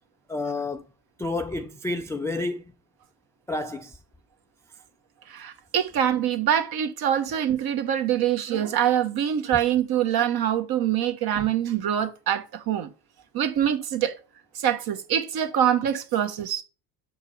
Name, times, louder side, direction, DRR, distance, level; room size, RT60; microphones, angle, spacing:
voice 1, 0.3-0.8 1.2-2.6 3.5-4.0, left 2 dB, 5° left, 0.3 m, -29 dB
voice 2, 5.3-12.9 13.3-14.2 14.6-16.6, right 10 dB, 45° right, 1.2 m, -24 dB
6.5 x 4.7 x 4.4 m
supercardioid pair, 85°, 50 cm